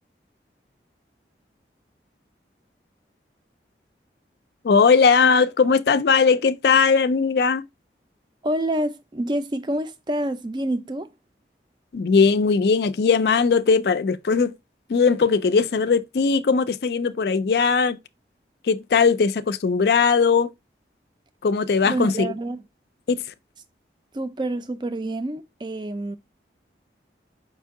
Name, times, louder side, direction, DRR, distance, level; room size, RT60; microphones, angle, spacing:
voice 1, 4.6-7.6 11.9-14.5 14.9-18.0 18.6-20.5 21.4-22.3 23.1-23.2, left 5 dB, 65° left, 0.4 m, -19 dB
voice 2, 8.4-11.1 21.8-22.6 24.1-26.2, right 1 dB, 25° right, 0.4 m, -27 dB
5.2 x 2.7 x 3.5 m
head